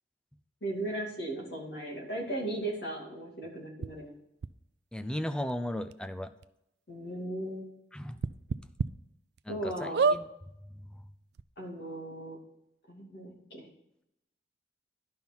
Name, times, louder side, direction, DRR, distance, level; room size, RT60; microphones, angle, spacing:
voice 1, 0.6-4.1 6.9-7.7 9.5-10.0 11.6-12.4 12.9-13.7, right 1 dB, 65° left, -1 dB, 2.5 m, -37 dB
sound 1, 3.8-3.9 4.4-4.5 5.5-5.6 5.9-6.0 6.4-6.5 8.2-8.9 9.4-9.5 9.9-10.2 11.1-11.2 11.3-11.4, right 5 dB, 65° right, 0.3 m, -27 dB
voice 2, 4.9-6.3 7.9-8.2 9.5-10.3, left 1 dB, 5° left, 10 dB, 0.4 m, -36 dB
11.0 x 5.6 x 4.4 m, 0.84 s
head